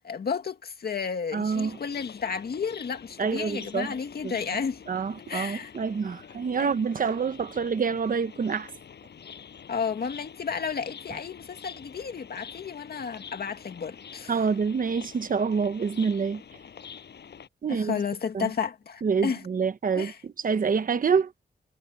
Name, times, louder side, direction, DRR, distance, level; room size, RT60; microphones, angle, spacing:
voice 1, 0.0-4.8 5.3-5.8 6.6-6.7 9.7-14.4 17.7-19.5 20.0-20.2, left 6 dB, 65° left, 2.2 m, -32 dB
voice 2, 1.3-1.8 3.2-3.9 4.2-4.3 4.9-8.7 14.3-16.4 17.6-18.0 18.3-18.5 19.0-20.1 20.4-21.3, right 5 dB, 55° right, 1.0 m, -26 dB
sound 1, 1.5-17.5, left 7 dB, 85° left, 7.4 m, -47 dB
wide cardioid pair, 135°, 17 cm